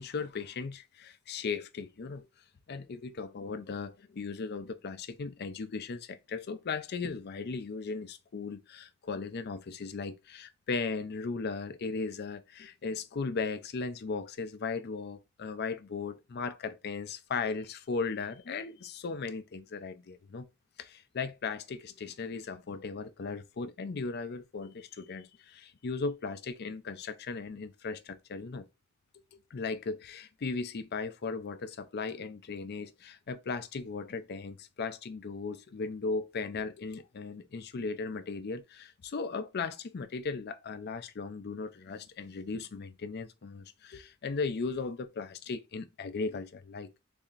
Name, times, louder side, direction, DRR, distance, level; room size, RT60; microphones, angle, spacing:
voice 1, 0.0-2.3 2.7-20.5 20.8-28.6 29.3-47.0, left 4 dB, 50° left, 0.5 m, -37 dB
6.7 x 2.8 x 2.5 m
head